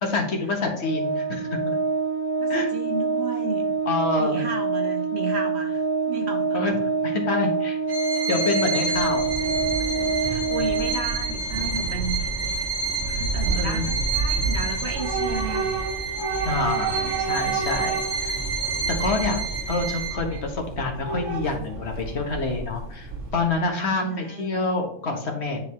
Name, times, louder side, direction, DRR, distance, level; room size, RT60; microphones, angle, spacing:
voice 1, 0.0-1.8 2.5-2.7 3.9-4.4 6.5-7.8 8.3-9.2 13.4-13.9 16.4-18.4 18.6-19.4 19.7-25.6, left 3 dB, 60° left, 2 dB, 1.4 m, -27 dB
Organ, 0.8-11.5, right 4 dB, 85° left, 1.5 m, -26 dB
voice 2, 2.4-3.7 4.2-6.6 10.2-12.3 12.5-12.7 13.0-15.7 16.9-17.4 23.9-24.6, right 4 dB, 60° right, 3 dB, 1.3 m, -33 dB
Bowed string instrument, 7.9-20.4, right 3 dB, 25° right, 2.8 m, -30 dB
Train / Subway metro underground, 8.8-23.6, right 4 dB, 90° right, 1.7 m, -30 dB
9.5 x 3.8 x 3.1 m, 0.62 s
omnidirectional pair, 1.3 m